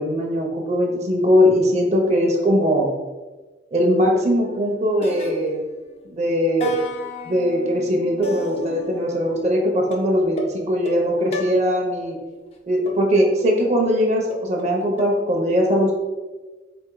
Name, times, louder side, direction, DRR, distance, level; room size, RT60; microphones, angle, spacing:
voice 1, 0.0-2.9 3.7-5.6 6.1-6.7 7.3-12.2 12.7-15.9, equal, 40° right, 0 dB, 0.7 m, -20 dB
sound 1, 4.4-4.7 5.0-6.1 6.6-9.4 9.9-12.1 12.9-15.1, left 2 dB, 35° left, 0.4 m, -33 dB
4.3 x 2.6 x 3.8 m, 1.2 s
head